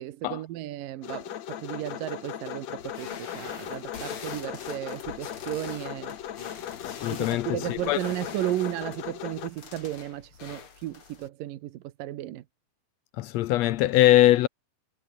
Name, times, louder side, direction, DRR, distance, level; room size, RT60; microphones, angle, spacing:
voice 1, 0.0-6.2 7.0-12.4, right 14 dB, 80° right, 2.7 m, -34 dB
sound 1, 1.0-9.5, left 11 dB, 60° left, 2.3 m, -38 dB
sound 2, 2.8-11.3, left 6 dB, 40° left, 3.2 m, -45 dB
voice 2, 6.8-8.0 13.2-14.5, left 15 dB, 80° left, 1.5 m, -22 dB
omnidirectional pair, 3.9 m